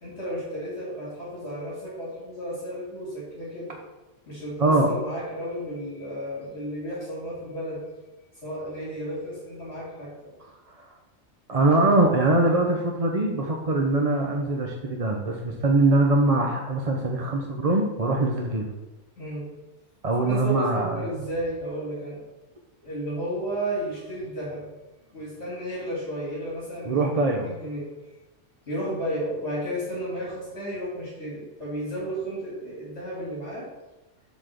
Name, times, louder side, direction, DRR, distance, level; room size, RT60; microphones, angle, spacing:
voice 1, 0.0-3.7 4.3-7.9 8.4-10.3 19.2-19.5 20.2-22.2 22.8-24.6 25.1-27.1 27.4-27.9 28.7-33.7, equal, 60° left, -6 dB, 2.6 m, -33 dB
voice 2, 11.5-18.7 20.0-21.1 26.9-27.5, right 2 dB, 35° right, 1 dB, 0.8 m, -22 dB
7.5 x 4.2 x 6.7 m, 1.1 s
omnidirectional pair, 1.3 m